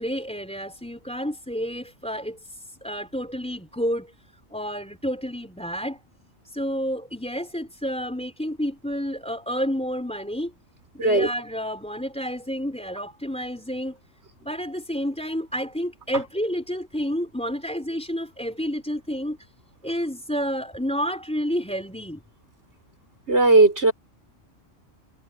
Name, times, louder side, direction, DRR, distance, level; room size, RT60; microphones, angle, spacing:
voice 1, 0.0-4.1 4.5-6.0 6.4-10.5 10.9-14.0 14.4-19.4 19.8-22.2, equal, 5° left, 4.3 m, -30 dB
voice 2, 23.3-23.9, right 2 dB, 55° right, 5.7 m, -17 dB
omnidirectional pair, 1.4 m